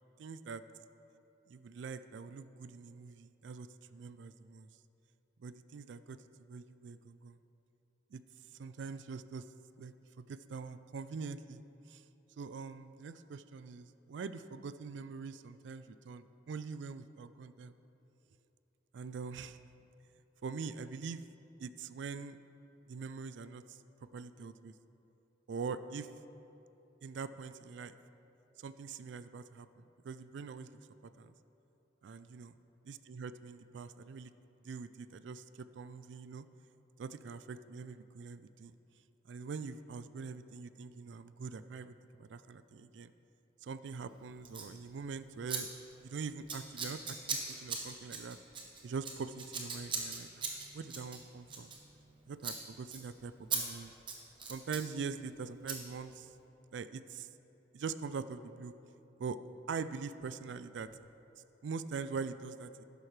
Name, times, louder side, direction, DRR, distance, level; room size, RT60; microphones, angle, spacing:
voice 1, 0.2-0.6 1.5-4.7 5.4-6.2 6.5-7.4 8.1-8.2 8.5-9.5 9.8-11.6 11.9-12.0 12.4-17.7 18.9-19.6 20.4-21.2 21.6-22.4 22.9-24.7 25.5-26.1 27.0-27.9 28.6-30.7 31.0-31.3 32.0-32.6 32.9-34.3 34.6-36.5 37.0-38.7 39.2-43.1 43.6-45.7 46.0-48.4 48.8-51.7 52.3-53.9 54.5-56.3 56.7-57.3 57.7-58.7 59.2-59.4 59.7-61.0 61.6-62.8, right 5 dB, 70° right, 13 dB, 0.3 m, -43 dB
Scissors, 44.5-44.7 45.5-45.6 45.9-46.1 46.5-52.1 52.4-52.6 52.9-53.0 53.5-53.6 53.9-54.9 55.7-55.8, right 5 dB, 25° right, 1.0 m, -39 dB
12.0 x 10.0 x 3.2 m, 3.0 s
head